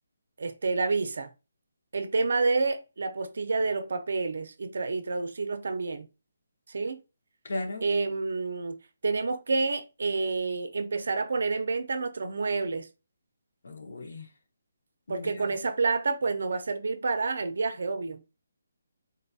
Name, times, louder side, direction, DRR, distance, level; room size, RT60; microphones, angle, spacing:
voice 1, 0.4-1.3 1.9-6.1 6.7-7.0 7.8-8.8 9.0-12.9 15.1-18.2, right 3 dB, 65° right, 0.5 m, -29 dB
voice 2, 7.4-7.9 13.6-14.3 15.1-15.5, left 2 dB, 60° left, 0.8 m, -36 dB
3.9 x 2.2 x 2.6 m
hypercardioid pair, 175°, 0 cm